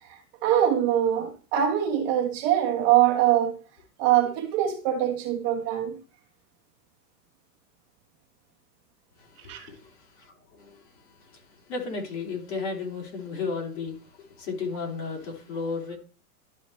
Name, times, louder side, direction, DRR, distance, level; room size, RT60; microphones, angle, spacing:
voice 1, 0.0-3.6 4.0-6.0 9.5-9.7, right 11 dB, 40° right, 1.4 m, -23 dB
voice 2, 9.2-10.9 11.2-16.0, left 4 dB, 45° left, 2.9 m, -34 dB
12.0 x 4.8 x 3.2 m
supercardioid pair, 155°, 48 cm